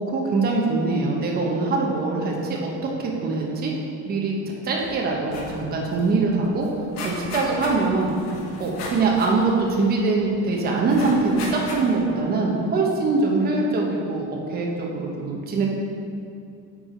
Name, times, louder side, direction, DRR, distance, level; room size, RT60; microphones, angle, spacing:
voice 1, 0.0-3.7 4.1-4.3 4.6-6.7 7.0-8.1 8.6-15.7, right 3 dB, 30° right, -1 dB, 1.0 m, -23 dB
sound 1, 4.8-5.0 5.2-5.6 5.9-6.0 6.3-10.3 10.9-12.1 12.6-12.7, left 2 dB, 50° left, 1.4 m, -36 dB
8.7 x 4.8 x 5.0 m, 2.5 s
cardioid pair, 180°, 33 cm